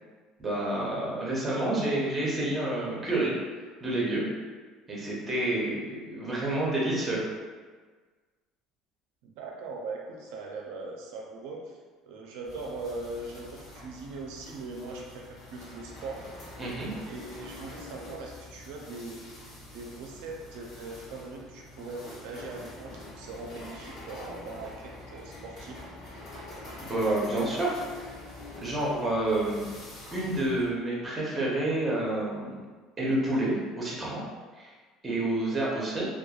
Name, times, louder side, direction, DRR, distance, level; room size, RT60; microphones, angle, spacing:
voice 1, 0.4-3.3 3.8-4.3 4.9-7.2 16.6-16.9 26.8-27.8 28.1-28.2 28.6-29.7 30.1-32.6 33.0-34.2 34.5-34.7 35.0-36.1, right 1 dB, 15° right, -5 dB, 0.5 m, -29 dB
voice 2, 9.2-11.8 12.1-16.3 16.6-19.3 19.7-25.8, right 3 dB, 80° right, 0 dB, 0.4 m, -40 dB
sound 1, 12.4-30.7, left 2 dB, 50° left, 0.9 m, -46 dB
2.9 x 2.2 x 2.3 m, 1.4 s
cardioid pair, 175°, 0 cm